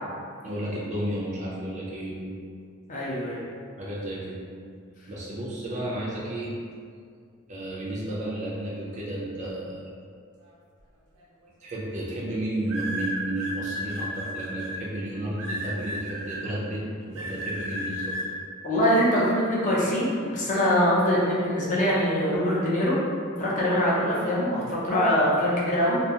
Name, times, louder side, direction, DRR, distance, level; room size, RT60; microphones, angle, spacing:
voice 1, 0.4-2.3 3.8-4.4 5.1-6.5 7.5-9.9 11.6-18.2, right 1 dB, 30° right, -5 dB, 0.4 m, -32 dB
voice 2, 2.9-3.4 18.6-23.0 23.4-26.0, equal, 35° left, -6 dB, 0.5 m, -23 dB
sound 1, 11.2-11.5 12.7-14.7 15.4-16.4 17.2-18.3, right 1 dB, 85° right, 0.6 m, -33 dB
2.3 x 2.3 x 2.7 m, 2.2 s
head